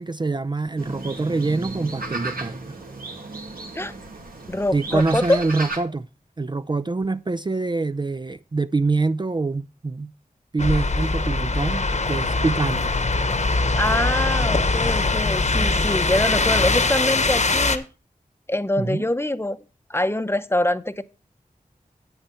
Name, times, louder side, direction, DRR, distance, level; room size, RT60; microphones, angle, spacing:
voice 1, 0.0-2.7 4.7-6.1 6.4-10.1 10.5-12.9 14.4-14.5 18.8-19.0, right 3 dB, 30° right, 0.4 m, -25 dB
sound 1, 0.8-5.8, right 2 dB, 90° right, 2.5 m, -34 dB
voice 2, 4.5-5.4 13.8-17.8 18.5-19.6 19.9-21.0, left 1 dB, 15° left, 0.7 m, -24 dB
sound 2, 10.6-17.8, left 3 dB, 55° left, 1.1 m, -22 dB
9.1 x 8.8 x 4.3 m
wide cardioid pair, 60°, 15 cm